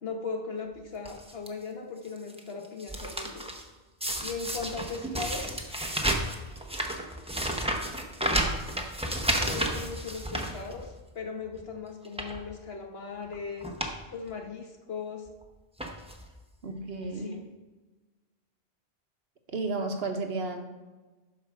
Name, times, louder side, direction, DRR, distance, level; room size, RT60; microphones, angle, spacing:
voice 1, 0.0-3.4 4.2-5.6 9.3-13.7 14.1-15.3 17.1-17.4, left 4 dB, 65° left, 2 dB, 1.5 m, -38 dB
sound 1, 1.0-1.5 2.0-3.6 4.0-11.1 11.5-11.6 12.0-12.4 13.2-13.3 13.6-14.0 14.3-14.4 15.3-15.4 15.8-16.3 17.0-17.1 17.3-17.4, right 1 dB, 5° right, 0.9 m, -32 dB
voice 2, 16.6-17.4 19.5-20.7, right 3 dB, 65° right, 5 dB, 1.3 m, -32 dB
8.7 x 5.4 x 6.1 m, 1.2 s
omnidirectional pair, 1.1 m